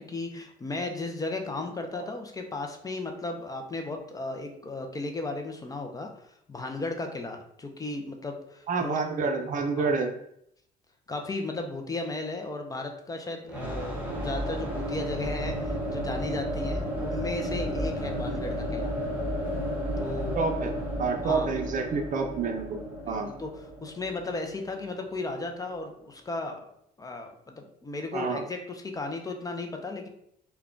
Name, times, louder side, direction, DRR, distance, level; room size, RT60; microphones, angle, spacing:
voice 1, 0.0-9.0 9.8-10.0 11.1-18.9 20.0-20.4 21.2-21.5 23.0-26.7 27.0-30.1, left 2 dB, 20° left, 4 dB, 0.5 m, -35 dB
voice 2, 8.7-10.1 20.3-20.7 21.0-22.8 23.1-23.3 28.1-28.4, right 4 dB, 50° right, 5 dB, 0.6 m, -28 dB
sound 1, 13.5-25.3, equal, 10° right, 1.0 m, -32 dB
3.5 x 2.3 x 3.7 m, 0.73 s
cardioid pair, 110°, 17 cm